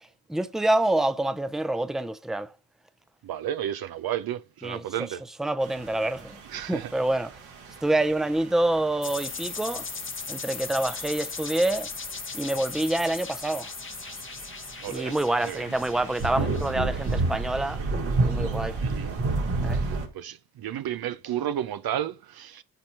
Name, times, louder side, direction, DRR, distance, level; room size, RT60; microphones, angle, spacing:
voice 1, 0.3-2.5 4.6-5.1 5.4-6.4 6.7-7.3 7.8-9.9 10.3-11.9 12.3-13.7 14.9-17.8 18.2-18.8 19.6-19.8, right 1 dB, ahead, 0.7 m, -27 dB
voice 2, 3.2-5.2 6.5-6.9 14.8-15.2 15.4-15.7 18.8-19.1 19.7-22.6, right 11 dB, 50° right, 0.6 m, -32 dB
sound 1, 5.6-20.1, right 3 dB, 70° right, 2.2 m, -32 dB
sound 2, 9.0-17.5, left 5 dB, 25° left, 1.0 m, -38 dB
11.0 x 4.3 x 4.6 m
hypercardioid pair, 40°, 49 cm